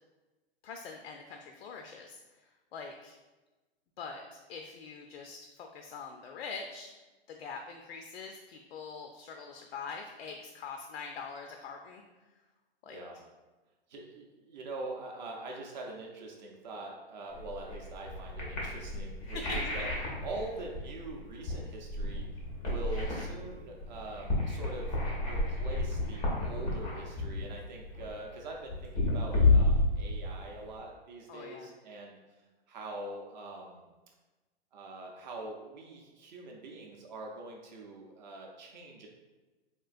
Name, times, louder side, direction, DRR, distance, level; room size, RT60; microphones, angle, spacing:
voice 1, 0.6-3.1 4.0-6.9 7.3-12.0 12.8-13.0 31.3-31.7, left 5 dB, 75° left, 3 dB, 0.4 m, -44 dB
voice 2, 12.9-13.2 13.9-19.9 20.2-22.3 22.6-24.9 25.2-32.2 32.7-33.9 34.7-39.1, right 2 dB, 45° right, 0 dB, 0.5 m, -43 dB
sound 1, 17.3-30.8, left 2 dB, 15° left, 0.4 m, -31 dB
3.6 x 2.5 x 2.4 m, 1.2 s
hypercardioid pair, 145°, 31 cm